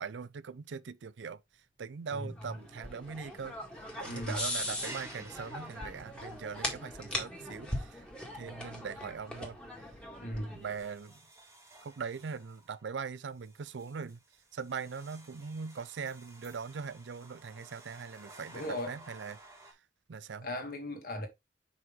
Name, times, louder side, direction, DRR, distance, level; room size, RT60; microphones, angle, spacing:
voice 1, 0.0-3.5 4.0-8.1 8.3-9.6 10.5-11.2 11.8-14.2 14.5-19.8 20.1-20.5, right 5 dB, 80° right, 0.5 m, -41 dB
sound 1, 1.5-2.0 2.3-2.4 2.7-3.4 3.6-8.9 9.3-9.5 10.0-10.1 10.6-19.7, right 2 dB, 15° right, 1.6 m, -54 dB
sound 2, 2.4-10.9, left 1 dB, 5° left, 1.8 m, -40 dB
voice 2, 4.1-4.4 10.2-10.6 18.5-19.0 20.4-21.3, left 1 dB, 50° left, 2.0 m, -37 dB
5.6 x 5.4 x 3.7 m
head